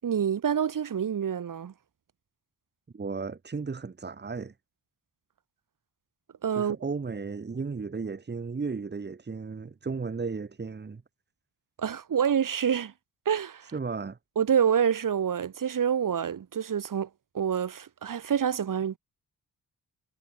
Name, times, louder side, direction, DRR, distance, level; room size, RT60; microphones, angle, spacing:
voice 1, 0.0-1.7 6.4-6.8 11.8-12.9 13.3-13.7 14.4-17.1 17.3-19.0, right 8 dB, 70° right, 7.9 m, -27 dB
voice 2, 2.9-4.5 6.5-11.0 13.7-14.2, right 4 dB, 30° right, 3.2 m, -34 dB
wide cardioid pair, 165°, 33 cm